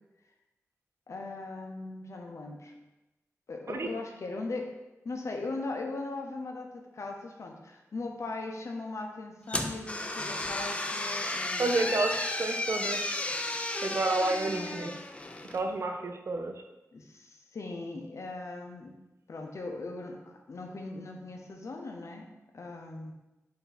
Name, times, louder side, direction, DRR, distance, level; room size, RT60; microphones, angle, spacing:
voice 1, 1.1-2.7 3.5-4.7 5.0-11.7 14.5-14.9 16.9-18.9 19.3-20.2 20.5-22.3 22.5-23.1, left 3 dB, 70° left, 2 dB, 0.6 m, -39 dB
sound 1, 9.5-15.6, left 2 dB, 25° left, 0.4 m, -33 dB
voice 2, 11.6-13.2 13.8-15.0 15.5-16.6, right 2 dB, 60° right, 5 dB, 0.5 m, -30 dB
4.4 x 2.7 x 4.0 m, 0.99 s
wide cardioid pair, 85°, 5 cm